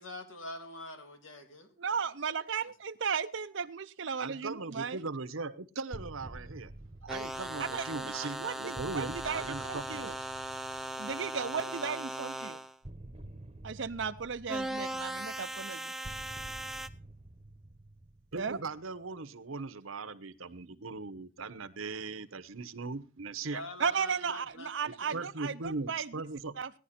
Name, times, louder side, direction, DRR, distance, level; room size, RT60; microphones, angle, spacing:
voice 1, 0.0-2.1 2.6-2.7 23.5-24.7 25.0-25.2, left 1 dB, 70° left, 6 dB, 2.8 m, -45 dB
voice 2, 1.8-5.0 7.6-10.1 11.0-12.6 13.6-15.9 18.3-18.6 23.8-26.1 26.6-26.7, right 6 dB, 60° right, 11 dB, 0.6 m, -35 dB
voice 3, 4.2-6.7 7.0-10.2 18.3-23.6 24.8-26.6, right 3 dB, 80° right, 12 dB, 1.0 m, -39 dB
sound 1, 5.9-11.7 12.8-19.1, right 1 dB, 30° right, 1.0 m, -50 dB
sound 2, 7.1-12.8 14.5-16.9, right 1 dB, ahead, 0.6 m, -38 dB
16.5 x 11.0 x 4.2 m, 0.34 s
head